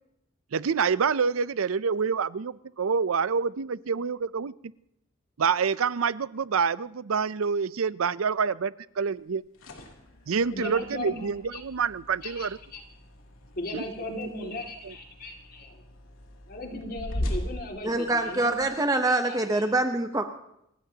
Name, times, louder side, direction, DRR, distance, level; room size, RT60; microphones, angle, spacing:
voice 1, 0.5-4.5 5.4-9.4 10.3-12.6 13.7-13.8 14.8-14.9, right 6 dB, 80° right, 18 dB, 0.5 m, -27 dB
sound 1, 9.3-18.6, equal, 80° left, 2.9 m, -40 dB
voice 2, 10.5-11.6 12.2-12.9 13.6-15.8 16.5-18.6 19.0-19.7, left 1 dB, 45° left, 2 dB, 2.3 m, -37 dB
voice 3, 17.8-20.2, right 2 dB, 15° right, 6 dB, 0.9 m, -25 dB
29.0 x 16.0 x 2.9 m, 0.79 s
head